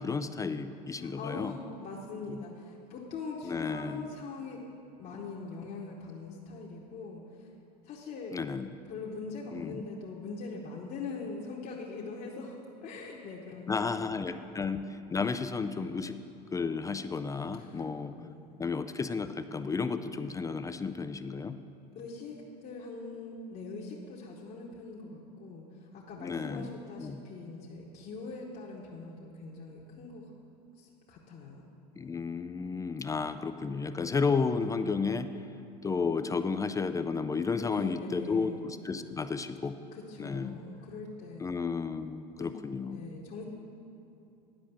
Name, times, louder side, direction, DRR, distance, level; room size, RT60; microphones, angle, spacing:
voice 1, 0.0-1.6 2.3-2.4 3.4-4.1 8.3-8.7 9.5-9.9 13.7-16.2 16.5-18.2 18.6-21.6 26.2-26.7 27.0-27.2 32.0-35.3 35.8-39.8 40.2-40.6 41.4-43.0, left 5 dB, 15° left, 9 dB, 0.3 m, -32 dB
voice 2, 1.0-4.6 5.0-7.5 7.8-8.4 8.9-14.1 17.5-17.8 18.1-18.6 21.9-25.7 25.9-30.2 30.8-31.7 37.6-38.6 39.9-41.5 42.4-42.5 42.8-43.4, left 4 dB, 45° left, -4 dB, 1.2 m, -42 dB
10.5 x 5.1 x 7.0 m, 2.9 s
hypercardioid pair, 90°, 21 cm